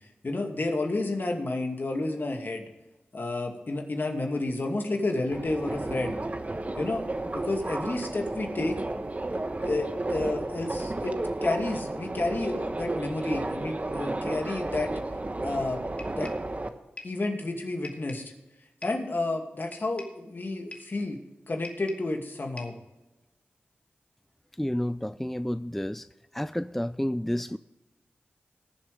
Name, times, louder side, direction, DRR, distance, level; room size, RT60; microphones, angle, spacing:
voice 1, 0.2-2.7 3.1-6.2 6.8-7.1 7.3-8.8 9.6-14.9 15.4-15.8 16.1-16.3 17.0-18.2 18.8-21.2 21.5-22.7, left 2 dB, 60° left, 3 dB, 2.3 m, -30 dB
Subway metro underground, 5.3-16.7, right 2 dB, 35° right, 1.1 m, -33 dB
sound 1, 16.0-16.5 17.0-17.2 17.8-18.3 18.8-19.1 19.7-20.2 20.7-21.0 21.6-22.1 22.6-22.9, left 2 dB, 35° left, 2.2 m, -45 dB
voice 2, 24.6-26.1 26.3-27.6, equal, 5° left, 14 dB, 0.4 m, -30 dB
19.5 x 7.5 x 3.4 m, 1.1 s
cardioid pair, 45°, 4 cm